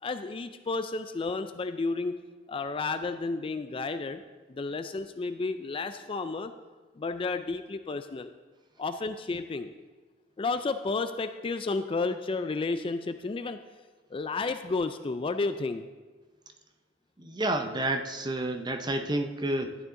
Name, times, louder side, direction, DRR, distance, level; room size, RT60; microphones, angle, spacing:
voice 1, 0.0-2.2 2.5-4.2 4.5-6.5 7.0-8.3 8.8-9.7 10.4-13.6 14.1-15.9, left 3 dB, 25° left, 9 dB, 0.3 m, -32 dB
voice 2, 17.2-19.8, right 1 dB, 20° right, 7 dB, 0.6 m, -30 dB
12.0 x 9.7 x 3.7 m, 1.3 s
head